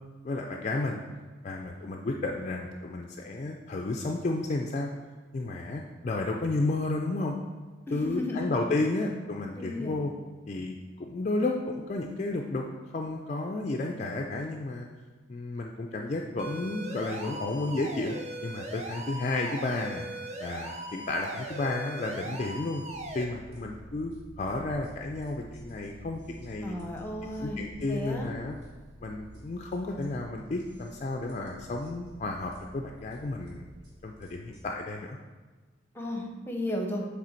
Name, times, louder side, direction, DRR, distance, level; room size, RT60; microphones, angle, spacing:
voice 1, 0.2-1.0 1.4-4.9 5.3-7.3 7.9-10.1 10.5-12.6 12.9-14.9 15.3-18.1 18.4-20.1 20.4-22.8 23.1-24.1 24.4-26.8 27.4-28.6 29.0-33.7 34.0-35.2, left 2 dB, 35° left, 2 dB, 0.3 m, -32 dB
voice 2, 7.9-8.5 9.5-10.1 26.6-28.3 35.9-37.1, left 1 dB, 10° left, 2 dB, 0.7 m, -34 dB
sound 1, 16.4-23.2, right 1 dB, 35° right, 0.5 m, -40 dB
sound 2, 22.9-34.6, equal, 55° right, 1.9 m, -50 dB
7.4 x 3.4 x 4.4 m, 1.3 s
head